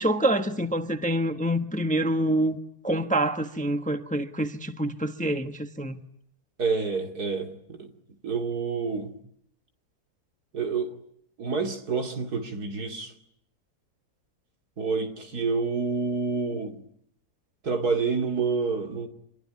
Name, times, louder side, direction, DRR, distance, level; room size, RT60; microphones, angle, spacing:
voice 1, 0.0-2.6 2.8-6.0, right 1 dB, 5° left, 1.0 m, -26 dB
voice 2, 6.6-7.9 8.2-9.1 10.5-11.0 11.4-13.1 14.8-16.8 17.6-19.1, right 4 dB, 75° right, 3.2 m, -28 dB
26.0 x 22.5 x 9.6 m
omnidirectional pair, 1.6 m